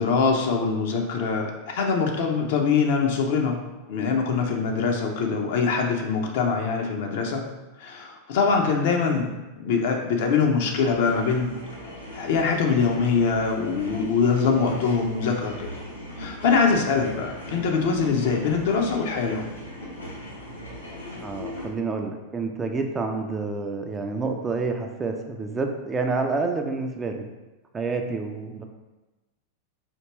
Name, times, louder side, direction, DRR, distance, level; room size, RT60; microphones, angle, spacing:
voice 1, 0.0-3.6 3.9-7.5 7.8-9.3 9.5-11.5 12.1-15.7 16.2-19.5, left 5 dB, 50° left, 2 dB, 0.6 m, -23 dB
sound 1, 10.7-21.7, left 1 dB, 80° left, 0.9 m, -39 dB
voice 2, 21.2-27.3 27.7-28.7, right 3 dB, 15° right, 3 dB, 0.4 m, -28 dB
4.3 x 2.8 x 3.0 m, 1.1 s
figure-of-eight pair, 90°, 0 cm